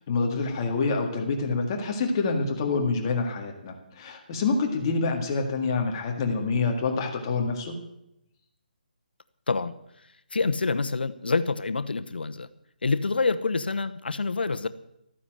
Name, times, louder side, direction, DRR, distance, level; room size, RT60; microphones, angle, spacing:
voice 1, 0.1-7.8, left 4 dB, 25° left, 2 dB, 1.8 m, -27 dB
voice 2, 10.3-12.5 12.8-14.7, left 4 dB, 85° left, 11 dB, 1.0 m, -26 dB
14.0 x 9.8 x 7.7 m, 0.80 s
hypercardioid pair, 170°, 5 cm